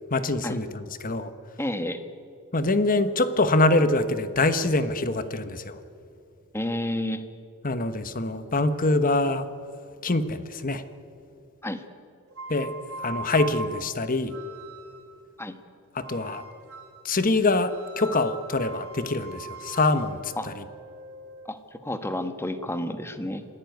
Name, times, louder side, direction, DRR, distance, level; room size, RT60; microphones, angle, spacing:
voice 1, 0.1-1.3 2.5-5.8 7.6-9.4 10.0-10.8 12.5-12.7 13.0-14.3 15.9-16.4 17.0-20.6, left 2 dB, 40° left, 11 dB, 1.2 m, -24 dB
voice 2, 1.6-2.0 6.5-7.2 11.6-11.8 15.4-15.6 20.4-20.5 21.5-23.4, left 1 dB, 10° left, 9 dB, 1.4 m, -30 dB
sound 1, 12.3-15.2 16.0-17.1 17.7-21.6, right 3 dB, 70° right, 4.6 m, -41 dB
26.5 x 17.0 x 9.4 m, 2.6 s
head